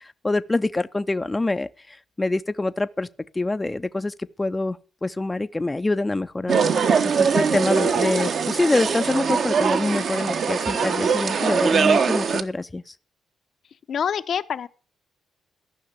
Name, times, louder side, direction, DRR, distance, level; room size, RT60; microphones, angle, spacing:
voice 1, 0.0-3.1 3.3-6.6 7.2-12.9, left 2 dB, 15° left, 0.5 m, -25 dB
sound 1, 6.5-12.4, right 6 dB, 55° right, 1.1 m, -22 dB
voice 2, 13.9-14.7, left 8 dB, 60° left, 0.7 m, -26 dB
14.0 x 5.8 x 8.3 m
cardioid pair, 90°, 0 cm